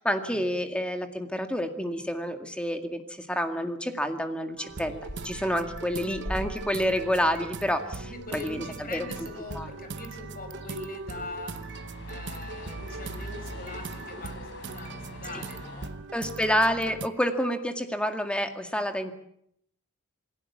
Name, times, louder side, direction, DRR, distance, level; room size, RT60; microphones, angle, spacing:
voice 1, 0.0-5.0 5.2-8.6 8.9-9.1 9.5-9.7 16.1-19.1, equal, 5° left, 5 dB, 2.1 m, -28 dB
sound 1, 4.6-17.1, right 4 dB, 55° right, 0.9 m, -41 dB
sound 2, 4.7-15.9, equal, 60° left, 5.2 m, -43 dB
voice 2, 8.0-11.6 12.1-15.9, left 2 dB, 40° left, 7 dB, 5.3 m, -41 dB
28.0 x 19.0 x 7.3 m, 0.73 s
head